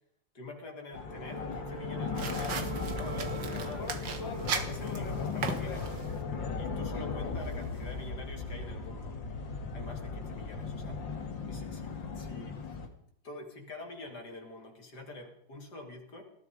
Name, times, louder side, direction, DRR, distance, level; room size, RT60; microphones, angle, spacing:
voice 1, 0.4-5.9 6.6-9.2 9.7-12.6 13.2-16.2, left 2 dB, 60° left, 3 dB, 3.4 m, -46 dB
sound 1, 0.9-12.9, left 4 dB, 90° left, 2.8 m, -37 dB
Wind instrument woodwind instrument, 1.0-5.5, right 9 dB, 65° right, 1.8 m, -45 dB
sound 2, 2.1-6.2, right 6 dB, 80° right, 2.3 m, -38 dB
19.5 x 14.0 x 5.2 m, 0.69 s
omnidirectional pair, 2.0 m